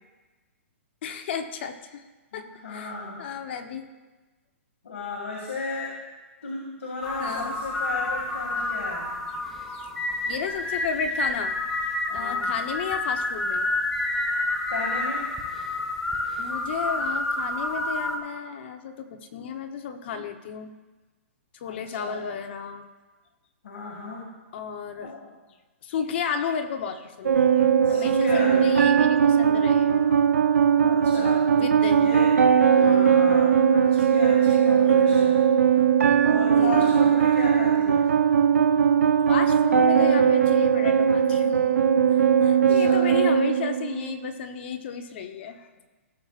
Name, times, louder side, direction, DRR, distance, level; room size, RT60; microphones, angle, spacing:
voice 1, 1.0-2.0 2.3-2.9 3.2-3.9 7.2-7.5 9.7-9.9 10.3-11.6 12.1-13.7 16.4-20.7 21.5-22.9 24.5-25.1 25.8-30.3 31.6-32.1 32.8-33.2 34.0-34.1 36.6-37.2 39.3-41.6 42.1-45.7, left 7 dB, 55° left, 6 dB, 1.0 m, -33 dB
voice 2, 2.3-3.2 4.8-5.9 6.4-9.1 12.1-12.5 14.7-15.3 21.6-22.3 23.6-24.3 25.0-25.3 27.8-28.7 30.8-31.4 32.0-32.3 32.7-35.4 36.2-38.1 42.4-43.1, left 3 dB, 75° left, -3 dB, 2.3 m, -34 dB
sound 1, 7.0-18.2, left 2 dB, 5° left, 0.9 m, -29 dB
sound 2, 27.2-44.2, right 7 dB, 90° right, 0.7 m, -19 dB
17.0 x 7.3 x 2.5 m, 1.2 s
hypercardioid pair, 140°, 7 cm